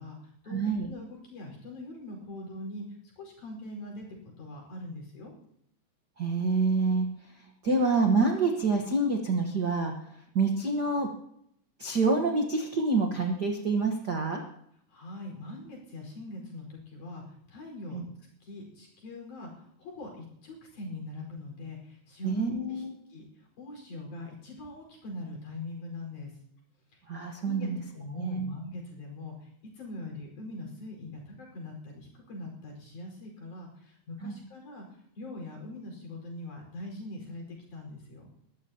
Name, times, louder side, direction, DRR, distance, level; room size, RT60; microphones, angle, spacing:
voice 1, 0.0-2.8 3.2-4.1 4.4-5.3 14.9-17.2 17.5-18.0 18.4-22.8 23.1-26.3 26.9-27.0 27.4-29.5 29.7-34.8 35.2-38.3, left 2 dB, 55° left, 0 dB, 6.3 m, -42 dB
voice 2, 0.5-0.9 6.2-7.1 7.6-9.9 10.3-11.1 11.8-14.4 17.9-18.0 22.2-22.9 27.1-27.8 28.2-28.5 34.2-34.4, right 3 dB, 80° right, 2 dB, 0.9 m, -27 dB
23.0 x 14.0 x 2.9 m, 0.72 s
omnidirectional pair, 4.2 m